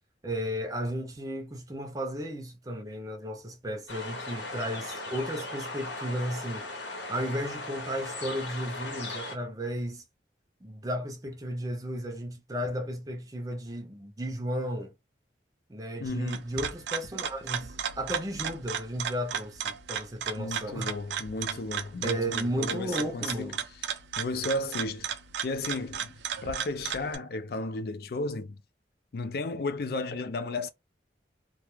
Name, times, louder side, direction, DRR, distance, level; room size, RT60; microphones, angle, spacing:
voice 1, 0.2-6.7 7.1-10.0 10.6-14.9 15.7-20.9 22.0-23.6, equal, 20° right, 0.5 m, -34 dB
sound 1, 3.9-9.4, left 2 dB, 80° left, 0.9 m, -38 dB
voice 2, 16.0-16.4 20.4-23.6 24.2-25.1 25.4-26.2 26.4-28.6 29.1-30.7, left 2 dB, 55° left, 0.4 m, -34 dB
sound 2, 16.1-27.2, right 8 dB, 80° right, 0.4 m, -35 dB
2.3 x 2.2 x 3.0 m
head